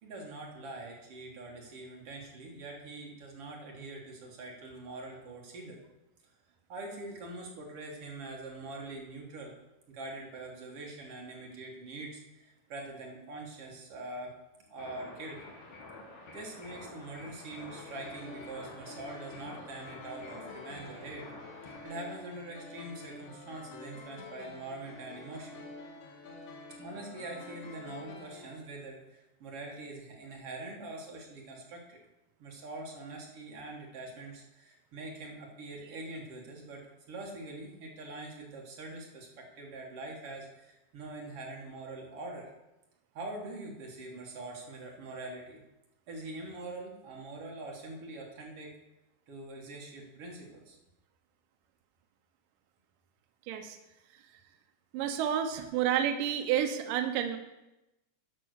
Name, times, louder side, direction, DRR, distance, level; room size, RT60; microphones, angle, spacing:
voice 1, 0.0-5.8 6.7-9.5 9.9-14.3 14.7-15.5 16.3-21.3 21.8-25.6 26.8-32.0 32.4-42.5 43.1-45.6 46.1-48.7 49.3-50.8, right 2 dB, 50° right, 0 dB, 1.8 m, -44 dB
sound 1, 14.8-21.8, left 2 dB, 50° left, 3.3 m, -49 dB
sound 2, 17.5-28.6, left 3 dB, 75° left, 3.8 m, -48 dB
voice 2, 54.9-57.4, right 9 dB, 70° right, 6 dB, 2.2 m, -30 dB
11.5 x 5.5 x 6.4 m, 0.96 s
omnidirectional pair, 4.6 m